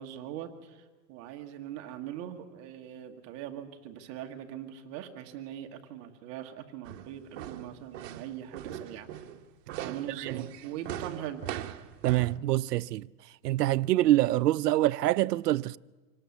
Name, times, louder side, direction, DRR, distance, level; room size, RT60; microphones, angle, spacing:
voice 1, 0.0-9.1 9.8-11.4, right 10 dB, 30° right, 1.4 m, -41 dB
sound 1, 6.9-12.4, right 11 dB, 50° right, 1.3 m, -40 dB
voice 2, 12.0-13.1 13.4-15.8, right 15 dB, 75° right, 0.6 m, -25 dB
26.0 x 18.5 x 7.1 m
hypercardioid pair, 150°, 48 cm